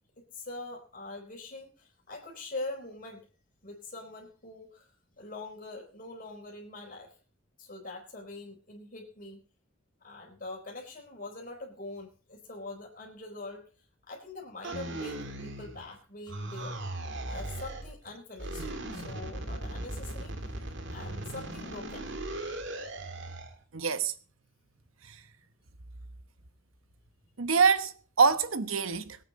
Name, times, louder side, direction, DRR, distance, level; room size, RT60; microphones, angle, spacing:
voice 1, 0.2-3.3 3.6-4.9 5.2-7.1 7.6-9.4 10.0-13.6 14.1-16.8 17.3-20.5 20.9-22.1, left 2 dB, 40° left, 4.2 m, -43 dB
sound 1, 14.6-15.9 16.3-17.9 18.4-23.5, right 1 dB, 60° right, 2.1 m, -38 dB
voice 2, 23.7-24.1 25.1-25.2 27.4-29.2, right 5 dB, 75° right, 1.0 m, -25 dB
22.0 x 9.0 x 4.1 m
head